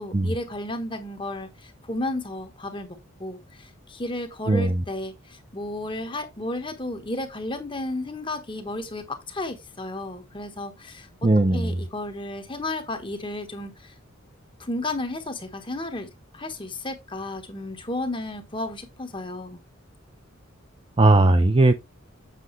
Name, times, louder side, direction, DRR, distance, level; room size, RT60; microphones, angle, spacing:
voice 1, 0.0-13.9 14.6-16.1 16.3-19.6, left 1 dB, 25° left, 1.2 m, -33 dB
voice 2, 11.2-11.7 21.0-21.7, right 2 dB, 25° right, 0.5 m, -18 dB
7.7 x 6.2 x 3.2 m
head